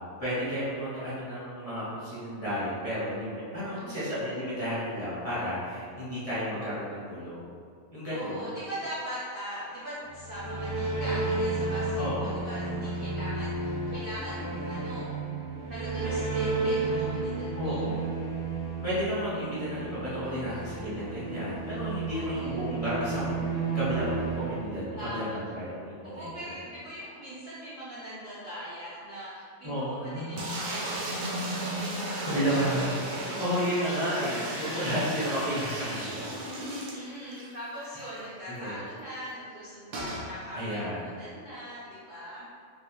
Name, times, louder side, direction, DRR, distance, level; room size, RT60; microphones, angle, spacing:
voice 1, 0.2-7.4 7.9-8.5 12.0-12.4 17.5-18.0 18.8-23.5 23.7-26.5 29.6-30.4 32.2-36.4 38.1-38.7 40.5-41.0, equal, 30° left, -12 dB, 0.8 m, -32 dB
voice 2, 3.7-4.2 8.1-15.1 15.7-17.9 20.2-20.7 22.1-22.7 25.0-25.4 26.0-32.7 33.2-33.3 36.5-42.5, equal, 50° right, -12 dB, 0.7 m, -41 dB
sound 1, 10.1-25.3, right 3 dB, 10° left, 0.5 m, -32 dB
sound 2, 30.4-37.5 37.9-38.0 38.2-38.3 39.9-40.3, right 1 dB, 85° right, 0.5 m, -34 dB
3.2 x 2.9 x 3.0 m, 2.2 s
omnidirectional pair, 1.7 m